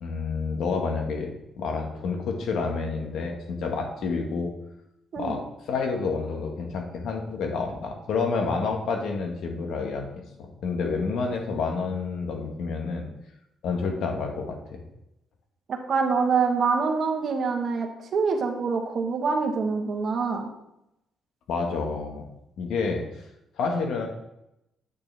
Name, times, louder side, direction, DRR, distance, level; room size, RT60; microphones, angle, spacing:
voice 1, 0.0-1.3 1.6-4.5 5.2-5.4 5.7-13.1 13.6-14.8 21.5-22.2 22.6-23.3 23.6-24.1, left 4 dB, 75° left, 2 dB, 1.6 m, -29 dB
voice 2, 15.7-20.5, right 5 dB, 55° right, 3 dB, 1.3 m, -25 dB
8.5 x 6.9 x 3.5 m, 0.85 s
cardioid pair, 90°, 0 cm